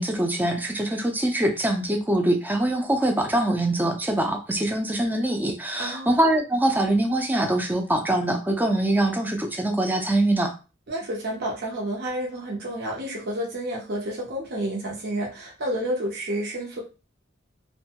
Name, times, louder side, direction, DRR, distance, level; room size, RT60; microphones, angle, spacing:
voice 1, 0.0-10.5, right 1 dB, 10° right, 3 dB, 0.4 m, -23 dB
voice 2, 5.8-6.1 10.9-16.8, right 1 dB, 55° right, -3 dB, 0.7 m, -30 dB
2.6 x 2.2 x 2.8 m, 0.31 s
head